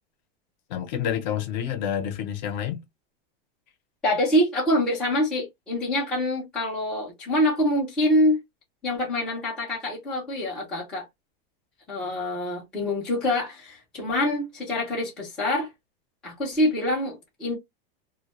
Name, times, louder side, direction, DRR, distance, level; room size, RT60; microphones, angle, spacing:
voice 1, 0.7-2.8, left 9 dB, 50° left, 0.6 m, -28 dB
voice 2, 4.0-8.4 8.8-11.1 11.9-15.7 16.2-17.6, left 1 dB, 5° left, 0.4 m, -25 dB
2.2 x 2.1 x 2.9 m
supercardioid pair, 175°, 30 cm